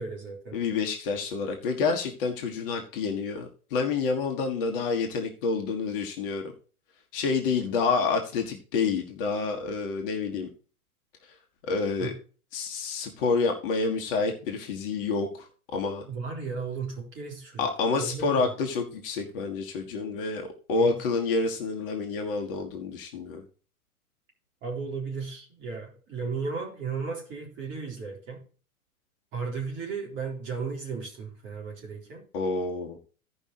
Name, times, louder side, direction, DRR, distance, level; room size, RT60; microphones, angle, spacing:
voice 1, 0.0-0.6 12.0-12.1 16.1-17.7 18.0-18.4 20.7-21.0 24.6-28.4 29.3-32.2, right 5 dB, 25° right, -1 dB, 3.8 m, -35 dB
voice 2, 0.5-6.4 7.1-10.5 11.6-12.1 12.5-16.1 17.6-23.4 32.3-33.0, left 4 dB, 40° left, 3 dB, 1.7 m, -28 dB
16.0 x 5.5 x 3.0 m, 0.38 s
figure-of-eight pair, 105°, 44 cm